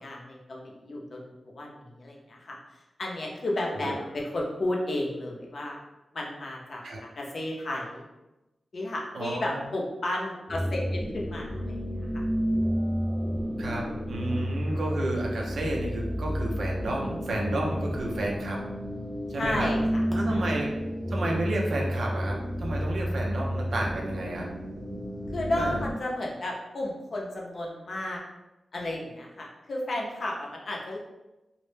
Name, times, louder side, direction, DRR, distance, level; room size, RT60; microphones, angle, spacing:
voice 1, 0.0-2.6 3.0-5.8 6.1-6.9 7.2-8.0 8.7-11.8 12.1-12.2 19.4-20.0 20.3-20.6 25.3-28.2 28.7-31.0, left 1 dB, 60° left, -1 dB, 0.5 m, -33 dB
voice 2, 9.1-9.7 13.6-18.6 19.3-19.7 20.1-20.7 21.1-24.5 25.6-25.8, right 1 dB, 80° right, -1 dB, 0.5 m, -31 dB
sound 1, 10.5-25.9, equal, 10° left, 0.6 m, -31 dB
2.0 x 2.0 x 3.0 m, 1.0 s
wide cardioid pair, 100°, 0 cm